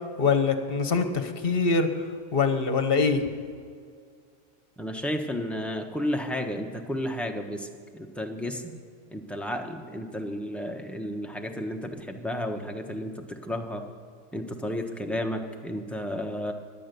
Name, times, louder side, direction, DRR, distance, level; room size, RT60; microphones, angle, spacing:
voice 1, 0.2-1.9 2.3-3.2, left 4 dB, 50° left, 8 dB, 1.3 m, -23 dB
voice 2, 4.8-7.7 7.9-8.6 9.1-13.8 14.3-16.5, equal, ahead, 2 dB, 1.0 m, -32 dB
17.0 x 11.0 x 6.9 m, 2.1 s
omnidirectional pair, 1.3 m